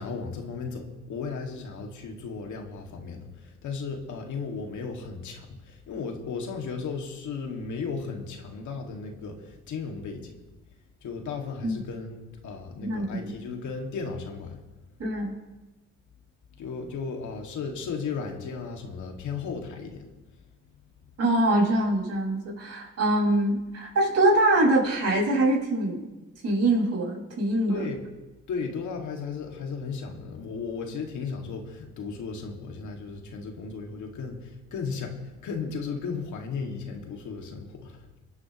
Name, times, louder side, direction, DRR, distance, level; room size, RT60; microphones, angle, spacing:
voice 1, 0.0-10.3 11.0-14.6 16.6-20.1 27.7-28.0 28.5-38.1, left 5 dB, 75° left, 2 dB, 2.1 m, -35 dB
voice 2, 12.8-13.3 15.0-15.4 21.2-26.1 26.4-27.9, right 1 dB, 55° right, -3 dB, 5.3 m, -24 dB
25.0 x 9.5 x 3.0 m, 1.1 s
cardioid pair, 90°, 30 cm